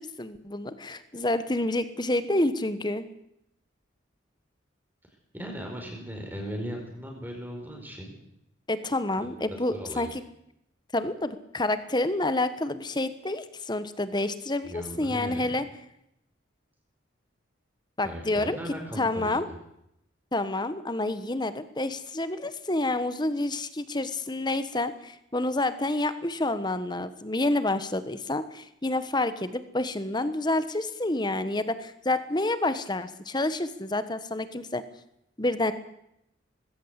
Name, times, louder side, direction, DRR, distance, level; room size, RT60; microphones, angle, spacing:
voice 1, 0.0-3.1 8.7-10.2 10.9-15.6 18.0-18.6 19.0-19.4 20.3-34.8 35.4-35.7, left 2 dB, 20° left, 12 dB, 1.3 m, -28 dB
voice 2, 5.3-8.1 9.2-10.1 14.6-15.5 18.0-19.5, equal, 10° right, 1 dB, 4.7 m, -38 dB
20.0 x 16.0 x 8.2 m, 0.79 s
head